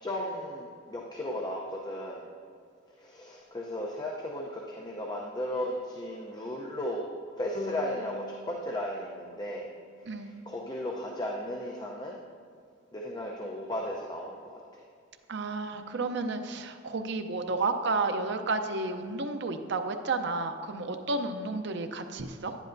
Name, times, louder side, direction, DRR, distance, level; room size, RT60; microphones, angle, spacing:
voice 1, 0.0-2.3 3.0-7.1 7.4-9.7 10.0-12.2 12.9-14.8, left 1 dB, 20° left, -1 dB, 0.7 m, -35 dB
sound 1, 7.5-10.8, left 1 dB, 40° left, 1.0 m, -44 dB
voice 2, 15.3-22.6, right 3 dB, 60° right, 6 dB, 0.6 m, -31 dB
10.5 x 10.0 x 2.6 m, 2.3 s
head